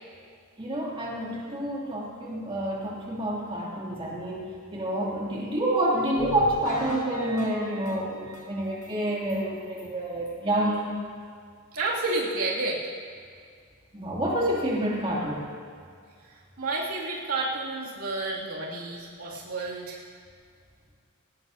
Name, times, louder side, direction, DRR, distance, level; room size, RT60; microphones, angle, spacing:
voice 1, 0.6-10.9 13.9-15.4, right 1 dB, 25° right, -5 dB, 2.8 m, -28 dB
sound 1, 6.2-8.9 9.3-9.4 9.8-9.9 10.3-10.4, equal, 85° left, 2.2 m, -39 dB
voice 2, 11.7-12.9 16.2-20.0, right 2 dB, 80° right, -5 dB, 2.6 m, -30 dB
19.5 x 18.5 x 2.8 m, 2.1 s
head